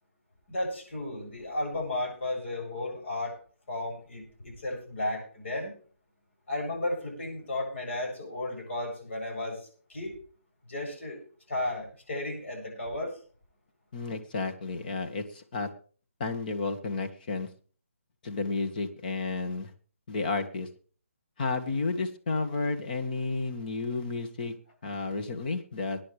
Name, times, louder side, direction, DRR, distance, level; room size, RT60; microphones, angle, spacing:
voice 1, 0.5-3.4 3.7-5.7 6.5-10.2 10.7-11.2 11.5-13.2 25.0-25.2, left 2 dB, 60° left, 1 dB, 7.8 m, -34 dB
voice 2, 13.9-15.7 16.2-17.5 18.2-19.7 20.1-20.7 21.4-24.5 24.8-26.0, left 3 dB, 40° left, 6 dB, 1.8 m, -32 dB
22.0 x 10.0 x 3.4 m, 0.40 s
hypercardioid pair, 160°, 7 cm